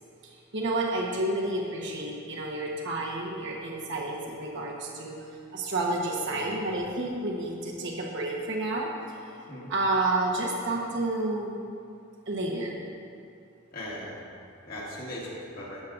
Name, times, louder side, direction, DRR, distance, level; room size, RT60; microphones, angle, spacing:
voice 1, 0.2-5.2 5.5-9.2 9.7-11.5 12.3-12.8, right 2 dB, 60° right, -1 dB, 1.1 m, -30 dB
voice 2, 13.7-14.2 14.6-15.8, left 1 dB, 45° left, -6 dB, 2.0 m, -39 dB
14.0 x 7.4 x 2.6 m, 2.5 s
head